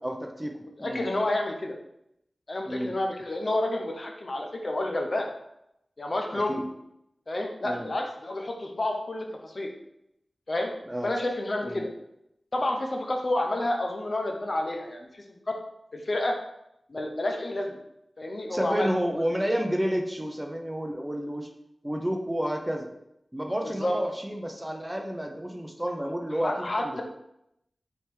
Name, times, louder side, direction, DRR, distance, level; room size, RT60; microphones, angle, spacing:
voice 1, 0.0-1.0 2.7-2.9 6.3-6.7 7.6-7.9 10.9-11.1 11.6-11.8 18.5-21.5 21.8-22.9 23.3-27.0, equal, 15° right, 2 dB, 0.7 m, -30 dB
voice 2, 0.8-1.7 2.5-5.3 6.0-6.5 7.3-9.7 10.5-10.7 11.0-11.9 12.5-15.5 15.9-16.4 16.9-17.8 18.2-19.0 23.6-24.0 26.4-27.0, left 1 dB, 55° left, 2 dB, 0.7 m, -29 dB
3.5 x 3.0 x 4.4 m, 0.80 s
cardioid pair, 45°, 0 cm